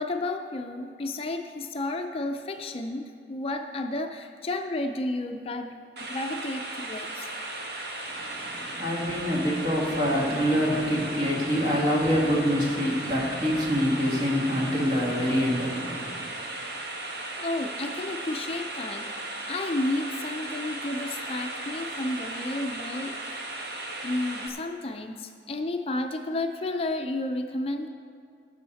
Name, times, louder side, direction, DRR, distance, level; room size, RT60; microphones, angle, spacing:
voice 1, 0.0-5.7 6.0-7.3 17.4-19.1 19.5-23.4 24.0-27.9, left 2 dB, 35° left, 5 dB, 0.4 m, -32 dB
sound 1, 6.0-24.5, right 2 dB, 75° right, 1.2 m, -36 dB
voice 2, 8.1-16.1, equal, 40° right, -4 dB, 2.4 m, -26 dB
19.0 x 6.4 x 4.1 m, 2.3 s
head